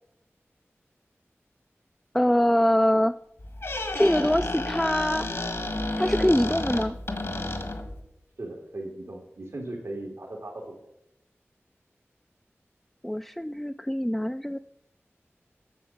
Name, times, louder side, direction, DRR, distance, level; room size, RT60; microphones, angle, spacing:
voice 1, 2.1-3.1 3.9-5.3 6.0-6.9 13.0-14.6, equal, 5° left, 8 dB, 0.3 m, -23 dB
Squeak, 3.4-8.0, left 2 dB, 65° left, 1.5 m, -31 dB
voice 2, 8.4-10.9, right 2 dB, 85° right, -3 dB, 2.0 m, -38 dB
9.3 x 6.9 x 7.1 m, 0.81 s
wide cardioid pair, 65°, 5 cm